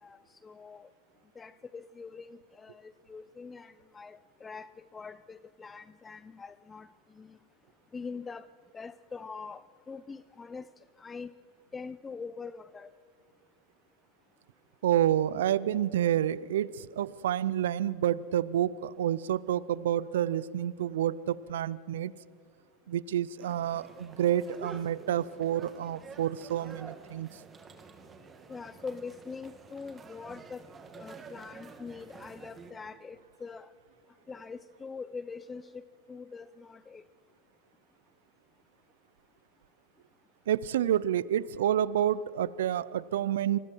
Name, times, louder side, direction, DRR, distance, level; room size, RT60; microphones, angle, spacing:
voice 1, 0.0-0.9 1.4-7.4 7.9-8.5 8.7-10.7 11.0-11.3 11.7-12.9 28.5-30.6 30.9-33.7 34.3-35.8 36.1-37.0, left 5 dB, 20° left, 15 dB, 0.5 m, -43 dB
voice 2, 14.8-22.1 22.9-27.4 40.5-43.6, right 11 dB, 80° right, 19 dB, 0.5 m, -29 dB
sound 1, 23.4-32.7, right 4 dB, 25° right, 2.4 m, -49 dB
27.5 x 20.5 x 4.6 m, 2.3 s
hypercardioid pair, 100°, 0 cm